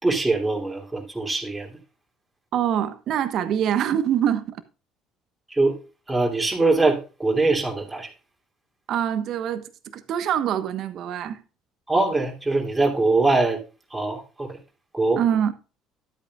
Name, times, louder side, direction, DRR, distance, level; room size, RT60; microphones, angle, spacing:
voice 1, 0.0-1.7 5.5-5.8 6.1-8.1 11.9-13.6 13.9-14.6 14.9-15.2, right 3 dB, 15° right, 3.0 m, -22 dB
voice 2, 2.5-4.6 8.9-11.4 15.2-15.5, right 9 dB, 60° right, 1.1 m, -24 dB
12.0 x 8.5 x 2.4 m
hypercardioid pair, 65°, 0 cm